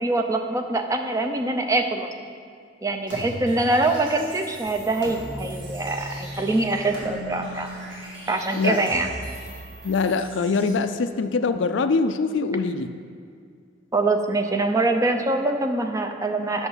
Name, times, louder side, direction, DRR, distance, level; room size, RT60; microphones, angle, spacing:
voice 1, 0.0-2.1 2.8-7.7 8.3-9.1 13.9-16.7, right 2 dB, 15° right, 5 dB, 0.5 m, -24 dB
sound 1, 3.1-10.7, equal, 65° right, 2.2 m, -37 dB
voice 2, 9.8-12.9, left 4 dB, 65° left, 10 dB, 0.4 m, -23 dB
8.1 x 6.7 x 5.6 m, 2.2 s
head